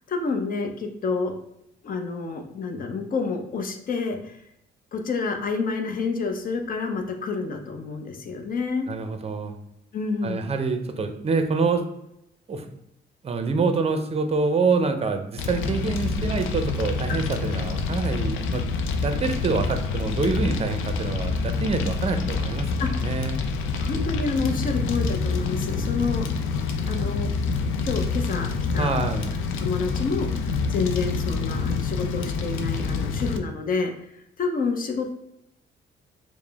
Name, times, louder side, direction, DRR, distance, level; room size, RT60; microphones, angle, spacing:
voice 1, 0.1-1.3 1.8-4.4 4.9-8.9 9.9-10.5 17.1-17.2 22.8-22.9 23.8-26.2 26.8-27.3 27.8-28.9 29.6-35.1, left 4 dB, 45° left, 4 dB, 0.7 m, -29 dB
voice 2, 8.9-9.6 10.2-11.8 12.5-12.6 13.2-18.7 19.0-22.7 23.0-23.4 24.7-25.1 28.8-29.3, right 4 dB, 30° right, 7 dB, 0.5 m, -26 dB
Fire, 15.4-33.4, left 4 dB, 85° left, 0.4 m, -27 dB
4.7 x 2.1 x 3.4 m, 0.80 s
cardioid pair, 90°, 20 cm